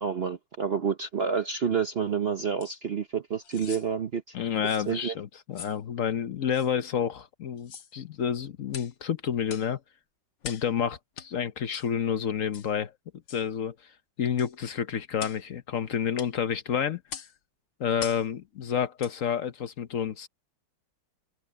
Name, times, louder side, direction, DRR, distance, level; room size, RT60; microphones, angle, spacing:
voice 1, 0.0-4.2 4.9-5.1, right 6 dB, 60° right, 0.6 m, -29 dB
sound 1, 2.6-2.8 3.4-3.9 4.6-4.9 5.5-5.8 6.5-6.7 7.6-7.9 8.7-8.9 9.5-9.7 10.4-10.7 11.2-11.3 11.7-11.9 12.5-12.7 13.3-13.5 14.4-14.5 15.2-15.4 16.2-16.3 17.1-17.3 18.0-18.3 19.0-19.2 19.6-19.7, left 8 dB, 70° left, 1.9 m, -42 dB
voice 2, 4.3-9.8 10.4-12.9 13.3-13.7 14.2-17.0 17.8-20.3, left 8 dB, 55° left, 1.0 m, -29 dB
open air
omnidirectional pair, 2.1 m